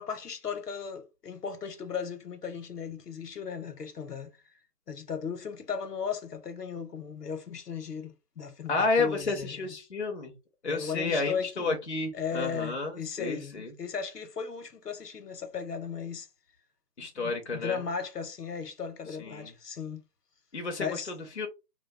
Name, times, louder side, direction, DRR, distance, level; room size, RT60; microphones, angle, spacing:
voice 1, 0.0-4.3 4.9-9.7 10.6-11.8 12.1-16.3 17.2-20.0 20.8-21.1, left 6 dB, 75° left, 0.8 m, -36 dB
voice 2, 8.7-10.4 10.6-13.7 17.0-17.8 19.2-19.5 20.5-21.5, left 3 dB, 45° left, 0.5 m, -31 dB
2.2 x 2.2 x 3.3 m
figure-of-eight pair, 160°, 48 cm